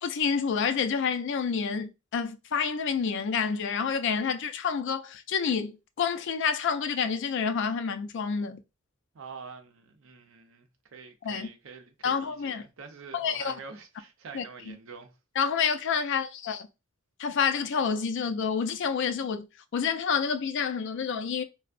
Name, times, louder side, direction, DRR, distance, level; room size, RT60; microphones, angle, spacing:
voice 1, 0.0-8.6 11.2-11.5 12.0-12.7 13.1-13.6 14.3-14.8 15.4-16.7 17.2-19.5 19.7-21.4, left 6 dB, 60° left, 0.4 m, -28 dB
voice 2, 9.1-15.1, right 5 dB, 70° right, 0.6 m, -46 dB
4.4 x 2.0 x 2.4 m
head